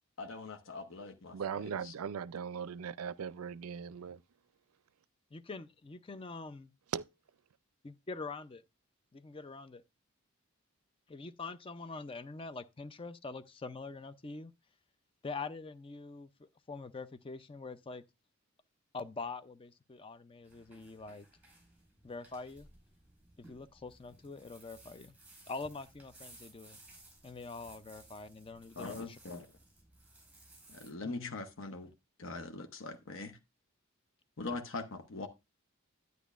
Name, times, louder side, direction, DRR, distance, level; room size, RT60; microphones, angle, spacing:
voice 1, 0.2-1.9 28.8-29.5 30.7-31.9 32.2-33.4 34.4-35.3, left 3 dB, 60° left, 0.9 m, -42 dB
voice 2, 1.3-4.2 6.9-7.0, right 7 dB, 85° right, 0.4 m, -39 dB
voice 3, 5.3-6.7 7.8-8.6 9.1-9.8 11.1-14.5 15.2-18.0 18.9-21.3 22.0-22.7 23.4-25.1 25.5-26.8 27.2-29.2 31.0-31.4, left 3 dB, 25° left, 0.4 m, -44 dB
sound 1, 20.4-30.9, right 2 dB, 5° right, 5.2 m, -59 dB
10.0 x 9.3 x 2.4 m
head